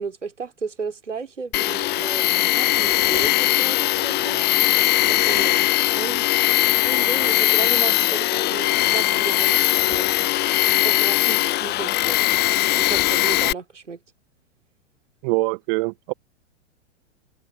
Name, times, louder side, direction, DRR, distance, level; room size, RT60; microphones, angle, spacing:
voice 1, 0.0-4.4 5.1-6.3 6.8-10.1 10.7-12.2 12.5-14.0, right 5 dB, 90° right, 3.2 m, -33 dB
Tools, 1.5-13.5, left 17 dB, 25° left, 0.9 m, -20 dB
voice 2, 15.2-16.1, right 25 dB, 45° right, 0.9 m, -23 dB
hypercardioid pair, 105°, 36 cm